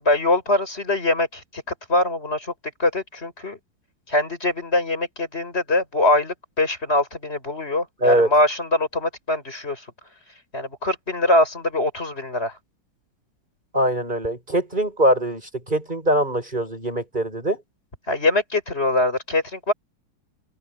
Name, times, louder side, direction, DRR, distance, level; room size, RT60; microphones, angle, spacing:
voice 1, 0.0-1.6 1.9-2.5 2.8-3.6 4.1-9.8 10.5-12.5 18.1-19.7, left 2 dB, 25° left, 6.2 m, -22 dB
voice 2, 8.0-8.3 13.7-15.4 15.7-17.6, right 1 dB, 20° right, 6.8 m, -22 dB
open air
omnidirectional pair, 2.4 m